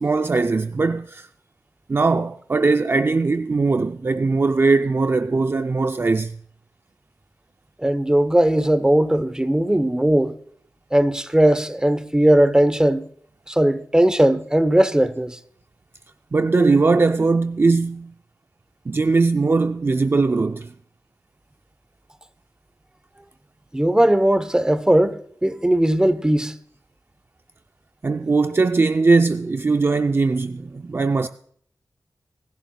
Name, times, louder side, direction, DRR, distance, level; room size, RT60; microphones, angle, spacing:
voice 1, 0.0-1.3 1.9-6.4 16.3-18.1 18.9-20.7 28.0-31.3, right 3 dB, 35° right, 0.4 m, -20 dB
voice 2, 7.8-10.3 10.9-13.0 13.5-15.4 23.7-26.5, right 1 dB, 10° right, 0.8 m, -18 dB
25.0 x 11.5 x 2.2 m
wide cardioid pair, 90°, 7 cm